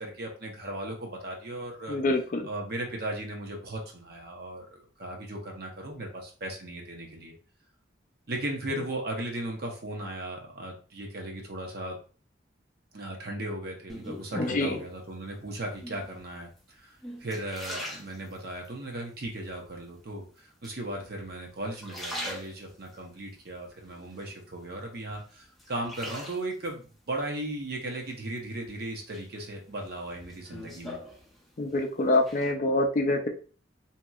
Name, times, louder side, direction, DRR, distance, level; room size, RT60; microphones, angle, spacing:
voice 1, 0.0-2.0 2.5-7.3 8.3-12.0 12.9-31.0, right 1 dB, 55° right, 1 dB, 0.8 m, -37 dB
voice 2, 1.9-2.5 14.3-14.8 31.6-33.3, left 2 dB, 45° left, 4 dB, 0.4 m, -26 dB
sound 1, 13.9-15.0 15.7-16.2 16.8-18.7 19.2-19.8 20.6-21.3 21.6-23.0 23.5-24.7 25.1-26.7 28.1-28.7 29.1-31.7 32.0-32.5, left 1 dB, ahead, 0.7 m, -41 dB
2.8 x 2.8 x 2.3 m, 0.38 s
head